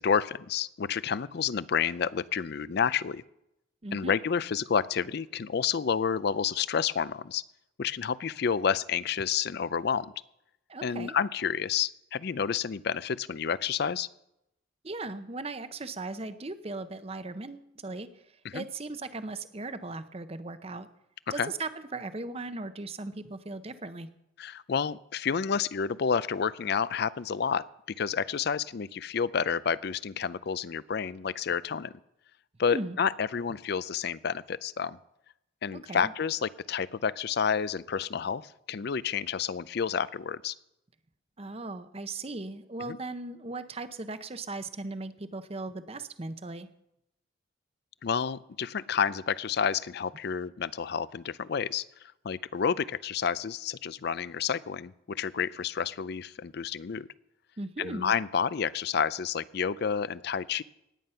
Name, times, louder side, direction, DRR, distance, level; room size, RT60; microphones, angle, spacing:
voice 1, 0.0-3.2 3.9-7.4 7.8-10.1 10.8-14.1 18.4-18.6 21.4-21.5 24.4-31.9 32.6-35.0 35.6-40.6 42.9-43.0 48.0-51.8 52.2-57.1 57.8-60.6, left 6 dB, 50° left, 19 dB, 0.4 m, -30 dB
voice 2, 3.8-4.2 10.7-11.1 14.8-18.1 18.5-20.9 21.3-24.1 32.7-33.0 35.7-36.1 41.4-46.7 57.6-58.1, right 2 dB, 30° right, 11 dB, 0.7 m, -38 dB
18.5 x 9.4 x 5.6 m, 0.86 s
head